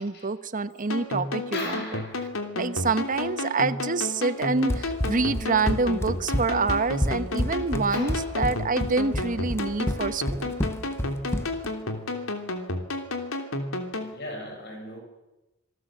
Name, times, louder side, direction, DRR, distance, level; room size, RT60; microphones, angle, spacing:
voice 1, 0.0-1.8 2.5-10.5, right 3 dB, 40° right, 13 dB, 1.0 m, -27 dB
sound 1, 0.9-14.1, left 2 dB, 85° left, 3.0 m, -32 dB
voice 2, 1.5-2.3 3.1-3.3 7.9-8.4 13.9-15.0, left 1 dB, 55° left, 3 dB, 6.3 m, -38 dB
Run, 4.7-11.7, equal, 15° left, 1.0 m, -29 dB
26.5 x 19.0 x 7.5 m, 1.0 s
head